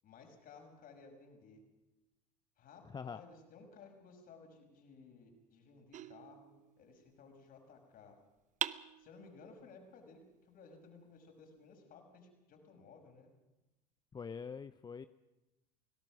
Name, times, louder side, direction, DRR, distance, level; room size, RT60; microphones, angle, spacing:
voice 1, 0.0-1.6 2.6-8.2 9.0-13.3, left 4 dB, 45° left, 4 dB, 5.9 m, -57 dB
sound 1, 5.9-7.1 8.6-9.6, right 11 dB, 40° right, 0.8 m, -43 dB
voice 2, 14.1-15.1, left 6 dB, 20° left, 13 dB, 0.7 m, -44 dB
28.5 x 18.0 x 6.2 m, 1.0 s
figure-of-eight pair, 70°, 20 cm